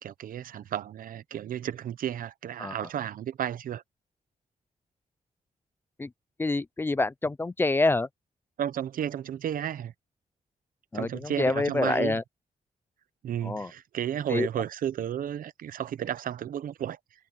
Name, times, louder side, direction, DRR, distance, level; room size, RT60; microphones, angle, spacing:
voice 1, 0.0-3.8 8.6-9.9 10.9-12.2 13.2-17.0, right 10 dB, 90° right, 0.8 m, -33 dB
voice 2, 6.4-8.1 10.9-12.2 13.4-13.7 14.3-14.5, left 2 dB, 15° left, 0.4 m, -27 dB
wide cardioid pair, 170°, 14 cm